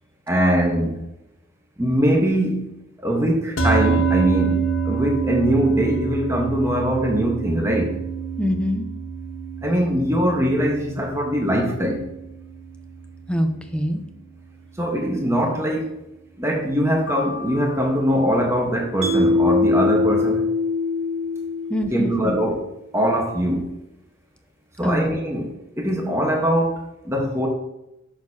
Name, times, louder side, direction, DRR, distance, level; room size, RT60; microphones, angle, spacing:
voice 1, 0.3-1.0 1.8-2.7 3.0-8.0 9.6-12.1 14.8-15.9 16.4-20.4 21.9-22.6 22.9-23.7 24.8-27.5, equal, 15° right, 0 dB, 1.2 m, -22 dB
sound 1, 3.6-14.0, right 5 dB, 70° left, 1.2 m, -27 dB
voice 2, 8.4-8.8 13.3-14.0 21.7-22.4 24.8-25.0, equal, 5° left, 5 dB, 0.7 m, -24 dB
sound 2, 17.1-19.2, left 4 dB, 85° left, 1.4 m, -37 dB
Mallet percussion, 19.0-22.3, left 3 dB, 35° right, 1.7 m, -22 dB
9.6 x 6.4 x 2.9 m, 0.86 s
head